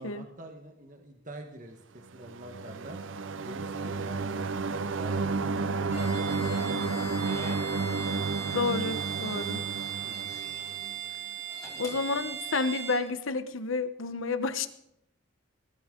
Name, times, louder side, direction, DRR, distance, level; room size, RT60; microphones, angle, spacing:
voice 1, 0.0-3.0 3.4-4.5 4.8-6.7 10.0-10.4, right 1 dB, 40° right, 4 dB, 1.3 m, -46 dB
sound 1, 2.2-10.9, right 3 dB, 70° right, 0.5 m, -32 dB
Bowed string instrument, 5.9-13.1, right 8 dB, 15° right, 3.1 m, -38 dB
Slam / Squeak, 6.1-8.1 8.4-9.4 9.8-10.7 11.3-12.9, left 2 dB, 15° left, 3.1 m, -50 dB
voice 2, 8.5-9.7 11.8-14.7, left 4 dB, 85° left, 11 dB, 1.0 m, -30 dB
20.0 x 13.5 x 3.8 m, 0.78 s
head